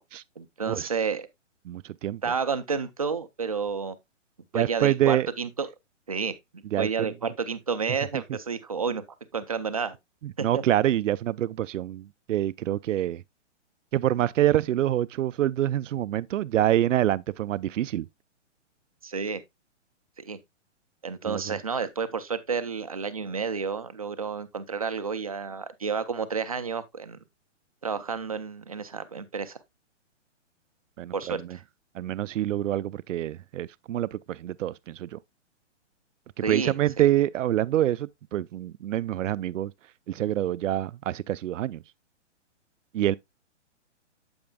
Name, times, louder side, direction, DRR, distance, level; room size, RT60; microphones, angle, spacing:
voice 1, 0.4-1.3 2.2-4.0 4.5-5.7 6.1-9.0 9.3-10.0 10.4-10.6 19.0-19.4 20.2-20.4 21.0-27.2 27.8-29.6 31.1-31.6 36.4-36.7, right 5 dB, 30° right, 0.5 m, -30 dB
voice 2, 1.7-2.2 4.5-5.3 6.7-7.1 10.2-13.2 13.9-18.1 21.2-21.6 31.0-31.4 31.9-35.2 36.5-39.7 40.1-41.8 42.9-43.2, right 12 dB, 85° right, 0.5 m, -26 dB
8.7 x 8.0 x 2.2 m
hypercardioid pair, 180°, 37 cm